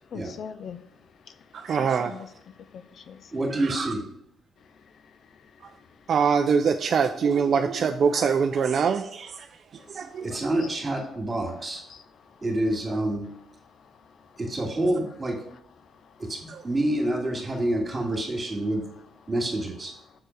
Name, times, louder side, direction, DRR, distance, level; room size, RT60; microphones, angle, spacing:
voice 1, 0.1-3.4 4.7-6.0 9.8-10.2 10.6-10.7 11.9-12.4 13.7-14.4 15.8-16.2, left 7 dB, 60° left, 0.4 m, -46 dB
voice 2, 1.5-2.2 3.5-3.9 5.6-5.7 6.1-9.5 9.7-10.4 16.5-16.6, right 6 dB, 55° right, 0.4 m, -24 dB
voice 3, 3.3-4.1 10.2-11.8 12.4-13.3 14.4-15.4 16.2-18.9 19.3-19.9, right 1 dB, 25° right, 2.4 m, -27 dB
6.7 x 4.4 x 4.7 m
cardioid pair, 90°, 0 cm